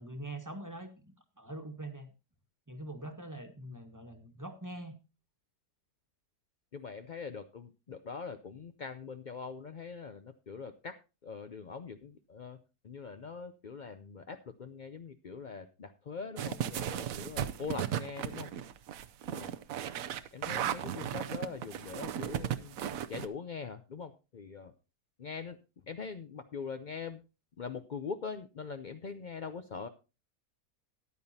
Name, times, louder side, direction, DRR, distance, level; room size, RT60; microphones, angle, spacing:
voice 1, 0.0-2.1 2.7-4.9, right 1 dB, 10° right, 5 dB, 1.3 m, -43 dB
voice 2, 6.7-18.5 19.3-19.6 20.3-22.7 23.1-24.7 25.2-25.6 25.9-27.2 27.6-29.9, left 5 dB, 75° left, 8 dB, 0.4 m, -43 dB
sound 1, 16.4-23.3, right 10 dB, 65° right, 1.0 m, -35 dB
14.0 x 10.5 x 2.7 m, 0.29 s
omnidirectional pair, 1.7 m